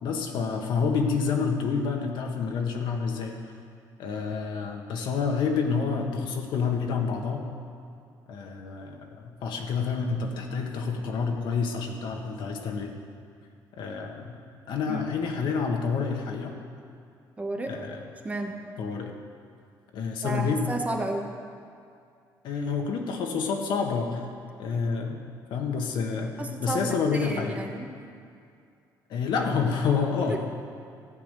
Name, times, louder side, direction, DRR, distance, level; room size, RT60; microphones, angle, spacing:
voice 1, 0.0-3.4 4.0-7.4 8.3-12.9 13.8-14.4 14.7-16.5 17.7-18.0 18.8-19.2 19.9-20.6 22.4-24.2 24.6-25.2 25.5-27.6 29.1-30.4, left 5 dB, 70° left, 2 dB, 1.5 m, -28 dB
voice 2, 17.4-17.7 18.2-18.6 20.2-21.3 26.4-27.9, right 2 dB, 15° right, 3 dB, 1.1 m, -32 dB
14.5 x 5.0 x 9.0 m, 2.4 s
cardioid pair, 120°, 8 cm